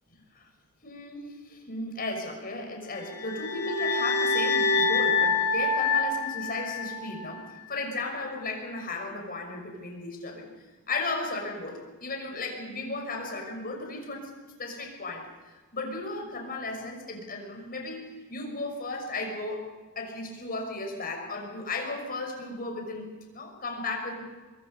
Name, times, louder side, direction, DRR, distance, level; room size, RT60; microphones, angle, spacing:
voice 1, 0.8-10.5 10.9-14.3 14.6-18.0 18.3-19.6 20.0-23.1 23.3-24.2, left 2 dB, 40° left, 2 dB, 6.0 m, -35 dB
sound 1, 3.0-7.3, left 4 dB, 90° left, 3.0 m, -26 dB
24.5 x 23.0 x 5.6 m, 1.3 s
head